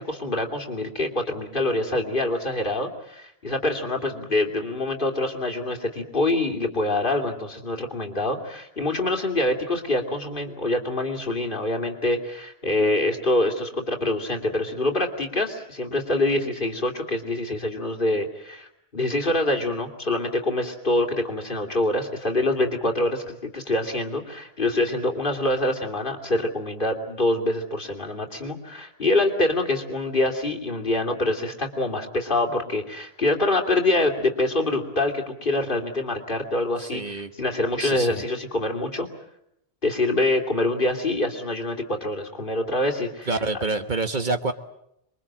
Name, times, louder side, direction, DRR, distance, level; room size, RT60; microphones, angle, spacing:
voice 1, 0.0-39.1 39.8-43.4, left 2 dB, 55° left, 3 dB, 3.2 m, -25 dB
voice 2, 36.8-37.3 37.8-38.2 43.3-44.5, right 3 dB, 50° right, 8 dB, 1.5 m, -27 dB
27.0 x 23.0 x 7.6 m, 0.77 s
omnidirectional pair, 1.1 m